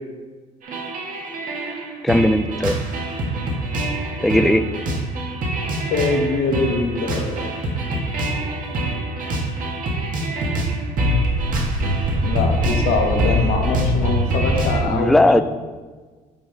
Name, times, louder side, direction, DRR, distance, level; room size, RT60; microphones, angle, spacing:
sound 1, 0.6-14.8, right 1 dB, 60° right, 1.7 m, -24 dB
voice 1, 2.0-2.8 4.2-4.7 14.9-15.4, left 1 dB, ahead, 10 dB, 0.4 m, -17 dB
voice 2, 5.9-7.4 12.2-15.4, left 3 dB, 80° left, 2 dB, 1.4 m, -23 dB
10.0 x 3.9 x 4.6 m, 1.4 s
supercardioid pair, 80°, 15 cm